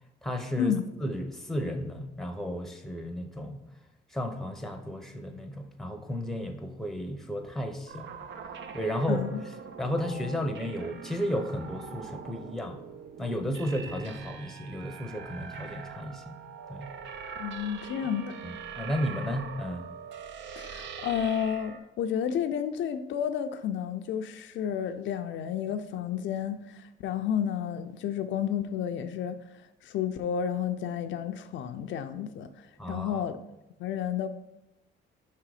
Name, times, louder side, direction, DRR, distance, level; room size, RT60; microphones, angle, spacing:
voice 1, 0.2-0.7 1.0-3.6 4.1-8.1 8.7-9.2 9.8-12.8 13.2-16.4 16.7-16.9 18.4-19.8 32.8-33.2, equal, ahead, 0.8 m, -33 dB
sound 1, 7.9-21.8, right 6 dB, 65° right, 0.6 m, -43 dB
voice 2, 9.1-9.4 17.4-18.4 20.6-29.4 29.8-32.5 32.9-33.4 33.8-34.3, left 8 dB, 70° left, 0.4 m, -31 dB
5.6 x 3.8 x 4.8 m
cardioid pair, 90°, 20 cm